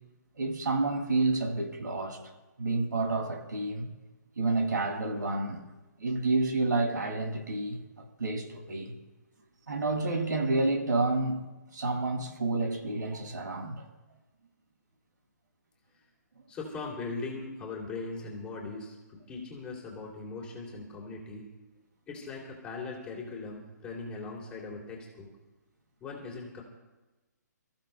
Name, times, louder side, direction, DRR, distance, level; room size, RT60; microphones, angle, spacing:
voice 1, 0.4-2.2 2.6-3.9 4.4-5.6 6.0-8.9 9.7-11.4 11.7-13.9, right 2 dB, 85° right, 5.8 m, -29 dB
voice 2, 16.5-21.4 22.1-25.3 26.0-26.6, left 3 dB, 10° left, 2.7 m, -40 dB
29.5 x 15.0 x 2.2 m
hypercardioid pair, 165°, 10 cm